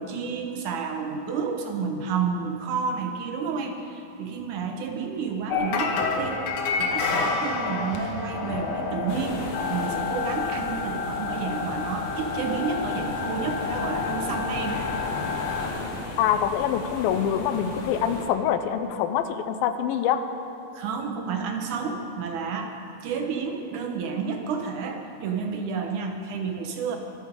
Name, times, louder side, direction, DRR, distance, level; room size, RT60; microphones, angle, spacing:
voice 1, 0.0-6.5 6.8-14.8 20.7-22.8 23.0-27.0, right 5 dB, 70° right, 4 dB, 2.1 m, -30 dB
sound 1, 5.5-15.7, left 5 dB, 65° left, 2.2 m, -29 dB
sound 2, 6.1-6.5 9.3-10.7 13.5-14.9 17.8-19.2, left 3 dB, 40° right, 3.7 m, -44 dB
sound 3, 9.1-18.3, left 2 dB, 50° left, 1.6 m, -36 dB
voice 2, 16.2-20.2, left 9 dB, 90° left, 9 dB, 2.5 m, -25 dB
24.5 x 9.1 x 5.1 m, 2.8 s
omnidirectional pair, 4.1 m